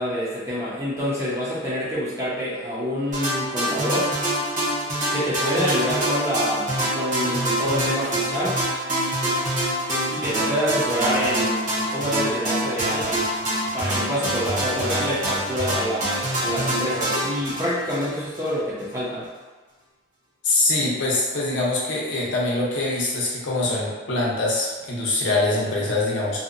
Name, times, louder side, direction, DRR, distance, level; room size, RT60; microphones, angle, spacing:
voice 1, 0.0-4.1 5.1-8.6 10.1-13.2 13.7-19.3, equal, 15° right, -9 dB, 0.5 m, -26 dB
sound 1, 3.1-18.5, right 1 dB, 40° right, 0.9 m, -25 dB
voice 2, 20.4-26.4, left 2 dB, 65° left, -5 dB, 0.6 m, -23 dB
2.7 x 2.1 x 2.5 m, 1.3 s
head